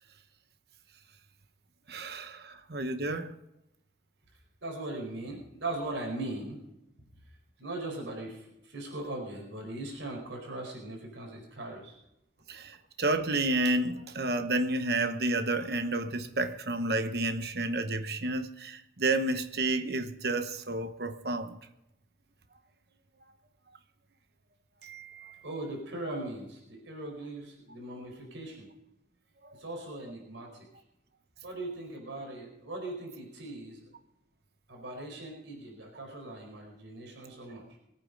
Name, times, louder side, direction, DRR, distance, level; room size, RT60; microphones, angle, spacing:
voice 1, 1.9-3.3 12.5-21.6 24.8-25.4, right 2 dB, 55° right, 1.0 m, -31 dB
voice 2, 4.6-6.6 7.6-12.0 25.4-28.7 29.6-30.6 31.4-33.8 34.7-37.6, right 2 dB, 90° right, 4.8 m, -39 dB
22.0 x 9.3 x 5.2 m
head